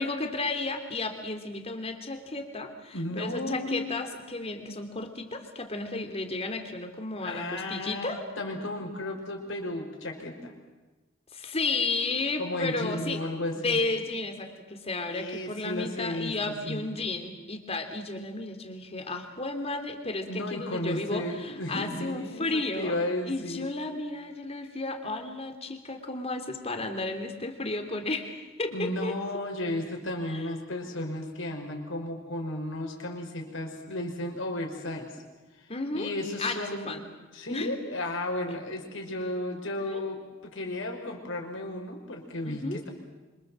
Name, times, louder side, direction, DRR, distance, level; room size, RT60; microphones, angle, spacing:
voice 1, 0.0-8.2 11.3-13.2 13.5-23.0 23.2-29.2 30.3-30.4 35.7-36.1 36.4-37.1 37.5-37.7 38.5-38.6 39.9-40.0 42.4-42.8, left 3 dB, 30° left, 6 dB, 3.2 m, -33 dB
voice 2, 2.9-3.9 7.2-10.5 12.4-13.8 15.1-16.8 20.2-23.7 28.7-35.2 35.6-36.9 37.3-42.9, left 1 dB, 65° left, 3 dB, 5.4 m, -34 dB
27.0 x 26.5 x 7.6 m, 1.2 s
head